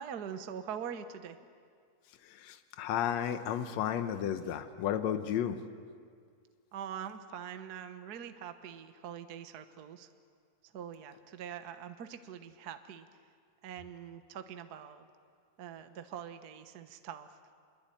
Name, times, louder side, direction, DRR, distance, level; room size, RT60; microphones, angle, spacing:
voice 1, 0.0-1.4 6.7-10.1 10.6-13.1 13.6-15.1 15.6-17.4, right 8 dB, 65° right, 9 dB, 1.0 m, -43 dB
voice 2, 2.2-5.6, left 9 dB, 70° left, 9 dB, 2.2 m, -33 dB
26.0 x 22.0 x 9.1 m, 2.1 s
omnidirectional pair, 3.4 m